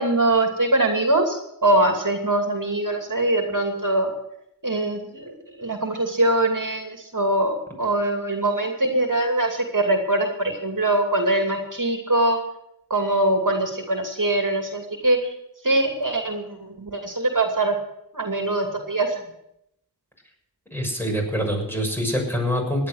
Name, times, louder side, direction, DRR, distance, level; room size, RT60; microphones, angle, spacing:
voice 1, 0.0-4.1 4.6-12.4 12.9-15.2 15.6-17.7 18.1-19.1, right 2 dB, 50° right, 3 dB, 2.7 m, -22 dB
voice 2, 20.7-22.9, equal, 5° left, 1 dB, 6.8 m, -25 dB
17.5 x 11.0 x 6.5 m, 0.77 s
wide cardioid pair, 40°, 40 cm